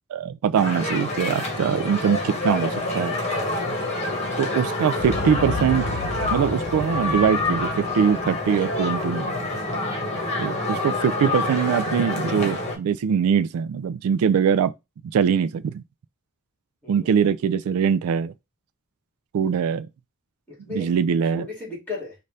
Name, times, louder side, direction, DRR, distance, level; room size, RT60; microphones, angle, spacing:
voice 1, 0.1-3.2 4.4-5.8 6.3-9.3 10.4-14.7 15.1-15.8 16.9-18.3 19.3-19.9 20.7-21.4, right 7 dB, 75° right, 0.3 m, -22 dB
sound 1, 0.5-12.8, left 2 dB, 30° left, 1.5 m, -27 dB
voice 2, 4.0-4.6 16.8-17.2 20.6-20.9 21.3-22.1, left 2 dB, 10° left, 2.3 m, -35 dB
Boom, 5.0-9.3, left 2 dB, 85° left, 0.6 m, -34 dB
5.3 x 2.6 x 3.3 m
head